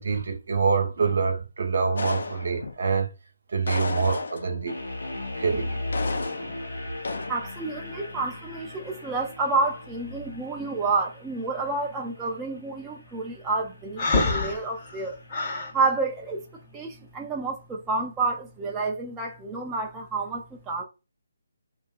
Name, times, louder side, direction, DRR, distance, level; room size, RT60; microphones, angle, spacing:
voice 1, 0.0-3.1 3.5-4.8 5.4-5.8, right 5 dB, 60° right, 0.6 m, -26 dB
sound 1, 2.0-2.8 3.7-4.7 5.9-6.6 7.0-7.4, left 3 dB, 70° left, 0.4 m, -32 dB
sound 2, 4.7-15.7, left 2 dB, 90° left, 0.9 m, -38 dB
voice 2, 7.3-15.2 15.7-20.8, right 3 dB, 10° right, 0.3 m, -29 dB
Breathing, 14.0-15.7, left 3 dB, 35° left, 0.7 m, -26 dB
2.6 x 2.3 x 2.2 m
figure-of-eight pair, 150°, 0 cm